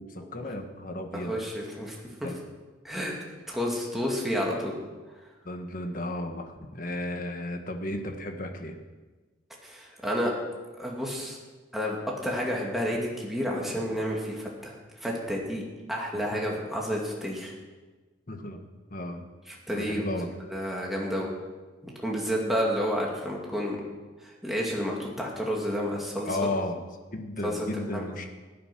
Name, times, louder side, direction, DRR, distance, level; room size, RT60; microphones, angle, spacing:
voice 1, 0.0-1.4 2.2-2.4 5.4-8.8 16.1-16.6 18.3-18.6 18.9-19.2 19.7-20.3 26.3-26.8 27.1-28.3, left 1 dB, 45° left, 5 dB, 1.4 m, -34 dB
voice 2, 1.1-2.0 2.8-3.1 3.5-4.8 9.6-10.3 10.8-11.4 11.7-15.6 15.9-17.5 19.5-20.1 20.5-21.3 21.8-23.8 24.2-26.3 27.4-27.7 27.9-28.0, equal, ahead, -3 dB, 2.4 m, -30 dB
16.0 x 9.3 x 6.1 m, 1.3 s
head